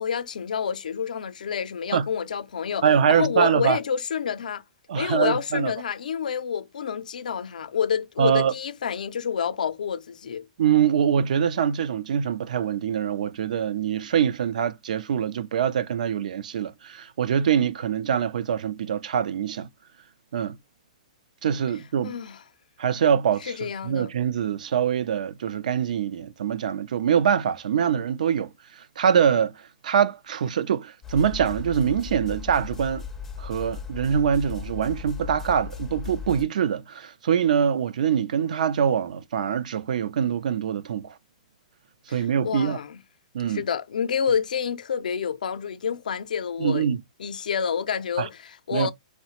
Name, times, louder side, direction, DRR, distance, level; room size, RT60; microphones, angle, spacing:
voice 1, 0.0-4.6 4.9-10.5 22.0-22.4 23.4-24.1 42.1-43.0 43.5-46.9 47.2-48.9, left 7 dB, 90° left, 0.4 m, -28 dB
voice 2, 2.8-3.8 4.9-5.7 8.2-8.5 10.6-19.7 20.3-20.6 21.4-22.2 22.8-29.5 29.8-33.0 33.4-41.1 42.1-42.8 43.3-43.6 46.6-47.0 48.2-48.3 48.7-48.9, right 8 dB, 75° right, 0.3 m, -24 dB
sound 1, 31.0-36.5, left 6 dB, 10° left, 0.4 m, -37 dB
2.8 x 2.1 x 2.8 m
hypercardioid pair, 150°, 4 cm